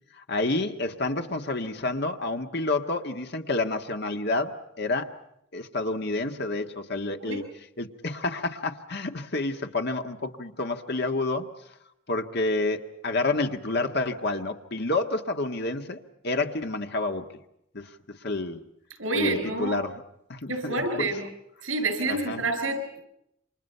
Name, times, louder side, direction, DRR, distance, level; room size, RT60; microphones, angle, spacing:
voice 1, 0.1-5.1 5.5-7.4 7.8-11.5 12.1-17.3 17.7-17.9 18.2-18.6 19.1-19.9 20.3-21.1 22.1-22.4, left 2 dB, 55° left, 6 dB, 1.7 m, -29 dB
voice 2, 19.0-19.8 20.5-21.3 21.6-23.0, right 2 dB, 80° right, 7 dB, 7.8 m, -28 dB
29.0 x 26.5 x 5.7 m, 0.77 s
head